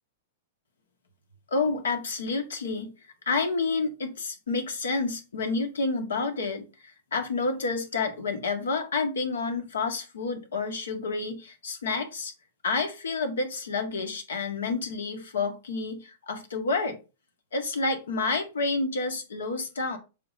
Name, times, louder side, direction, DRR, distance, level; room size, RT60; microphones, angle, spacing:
voice 1, 1.5-2.9 3.2-6.7 7.1-12.3 12.6-17.0 17.5-20.0, left 3 dB, 80° left, 4 dB, 1.7 m, -29 dB
6.7 x 3.8 x 4.0 m, 0.30 s
hypercardioid pair, 110°, 0 cm